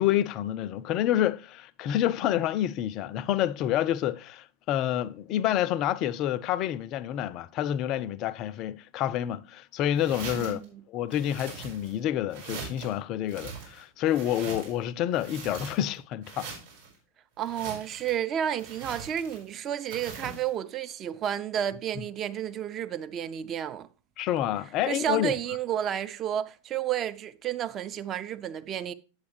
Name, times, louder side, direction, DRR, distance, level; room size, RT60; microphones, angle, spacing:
voice 1, 0.0-10.6 10.9-16.5 24.2-25.4, left 12 dB, 40° left, 0.3 m, -28 dB
sound 1, 10.0-10.6 11.1-12.0 12.3-12.9 13.3-14.8 15.1-16.0 16.2-16.9 17.4-18.2 18.6-19.5 19.9-20.5, right 5 dB, 65° right, 4.3 m, -42 dB
voice 2, 10.3-10.8 17.4-23.9 24.9-28.9, right 10 dB, 30° right, 0.4 m, -31 dB
8.1 x 8.0 x 3.2 m
figure-of-eight pair, 90°, 0 cm